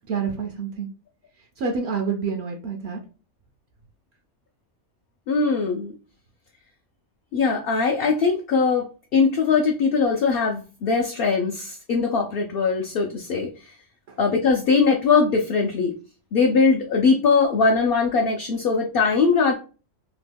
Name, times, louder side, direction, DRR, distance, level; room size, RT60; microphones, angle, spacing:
voice 1, 0.1-0.9 1.4-3.0 14.1-14.2, right 5 dB, 65° right, 3 dB, 0.8 m, -28 dB
voice 2, 5.3-5.9 7.3-13.5 14.2-15.9 16.3-19.5, left 4 dB, 60° left, 1 dB, 0.6 m, -21 dB
2.9 x 2.2 x 3.2 m, 0.34 s
omnidirectional pair, 1.3 m